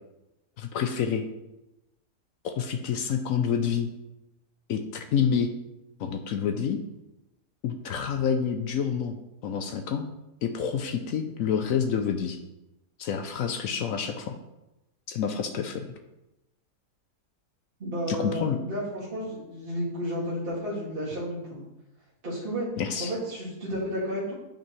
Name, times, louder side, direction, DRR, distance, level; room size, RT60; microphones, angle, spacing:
voice 1, 0.6-1.3 2.4-3.9 4.7-5.5 6.0-6.8 7.6-9.2 9.4-10.1 10.4-12.4 13.0-14.4 15.1-15.9 18.1-18.6 22.8-23.1, left 7 dB, 70° left, 7 dB, 0.9 m, -28 dB
voice 2, 17.8-21.6 22.2-22.7 23.0-24.3, equal, 35° right, -6 dB, 1.9 m, -32 dB
8.7 x 5.2 x 3.1 m, 0.97 s
omnidirectional pair, 1.7 m